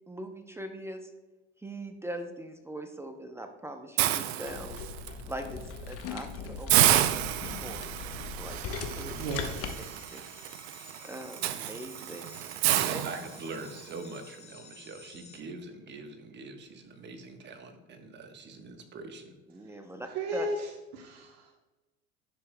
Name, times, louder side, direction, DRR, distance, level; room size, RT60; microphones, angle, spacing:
voice 1, 0.1-1.1 1.6-4.9 5.3-7.4 7.6-8.0 8.4-8.6 8.9-9.3 10.1-10.3 11.0-12.3 12.9-13.0 19.5-20.5, right 1 dB, 10° right, 6 dB, 0.6 m, -41 dB
Hiss, 4.0-5.1 5.6-5.8 6.1-6.2 6.7-13.8, right 13 dB, 85° right, 0.5 m, -29 dB
sound 1, 4.4-9.8, left 5 dB, 50° left, 1.0 m, -39 dB
voice 2, 9.0-9.7 20.1-20.6 20.9-21.5, right 2 dB, 60° right, 2 dB, 1.1 m, -35 dB
sound 2, 9.1-15.4, left 4 dB, 20° left, 1.0 m, -53 dB
voice 3, 12.7-19.4, right 3 dB, 35° right, 6 dB, 1.2 m, -43 dB
10.0 x 6.7 x 2.2 m, 1.1 s
supercardioid pair, 100°, 31 cm